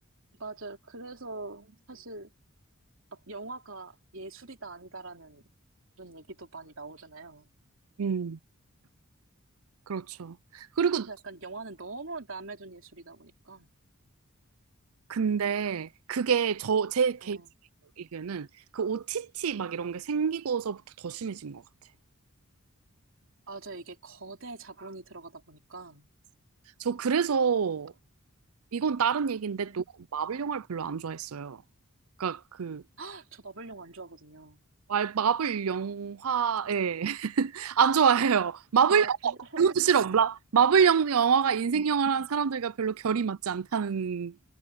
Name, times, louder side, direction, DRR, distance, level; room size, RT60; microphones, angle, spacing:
voice 1, 0.3-2.3 3.1-5.4 6.0-7.5 11.1-13.7 17.2-17.5 23.5-26.1 29.7-29.9 33.0-34.6 38.9-40.0, right 3 dB, 60° right, 3.7 m, -43 dB
voice 2, 8.0-8.4 9.9-11.1 15.1-17.4 18.0-18.5 18.7-21.6 26.8-27.9 28.7-29.8 30.1-31.6 32.2-32.8 34.9-44.3, right 6 dB, 85° right, 0.5 m, -27 dB
head